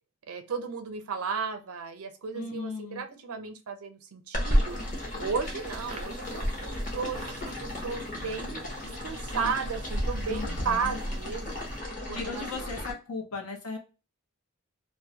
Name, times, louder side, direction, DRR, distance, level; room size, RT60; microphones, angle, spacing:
voice 1, 0.3-4.8 5.2-11.6 12.1-12.9, right 5 dB, 85° right, 7 dB, 0.5 m, -34 dB
voice 2, 2.3-3.0 9.3-9.5 10.3-11.0 12.1-13.8, left 4 dB, 85° left, 2 dB, 0.7 m, -37 dB
sound 1, 4.3-12.9, equal, 40° left, 0.7 m, -32 dB
sound 2, 4.6-11.8, right 3 dB, 30° right, 0.4 m, -48 dB
2.2 x 2.1 x 2.7 m, 0.32 s
head